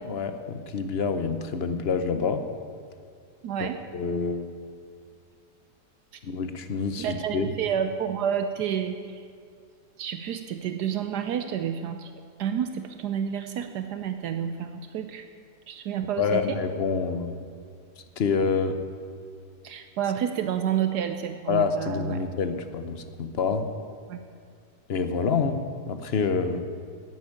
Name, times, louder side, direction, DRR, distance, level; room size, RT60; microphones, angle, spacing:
voice 1, 0.1-2.4 3.6-4.5 6.2-7.5 16.2-17.3 18.2-18.8 21.5-23.6 24.9-25.6 25.9-26.6, left 5 dB, 45° left, 9 dB, 0.9 m, -27 dB
voice 2, 3.4-3.8 7.0-9.2 10.0-12.1 12.4-15.2 15.7-16.6 19.6-22.2 24.1-24.2, right 9 dB, 75° right, 8 dB, 1.2 m, -29 dB
11.0 x 10.5 x 8.6 m, 2.3 s
omnidirectional pair, 1.8 m